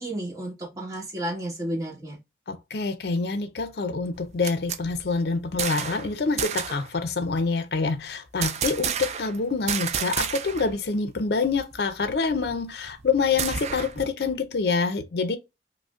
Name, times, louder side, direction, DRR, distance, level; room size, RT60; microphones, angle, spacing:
voice 1, 0.0-2.2, right 1 dB, 20° right, 1.3 m, -32 dB
voice 2, 2.5-15.4, left 4 dB, 60° left, 0.5 m, -26 dB
sound 1, 4.1-6.1 6.4-6.9 8.4-9.4 9.7-10.7 11.0-11.1 11.5-14.1, right 7 dB, 35° right, 0.3 m, -31 dB
5.0 x 2.1 x 2.3 m
head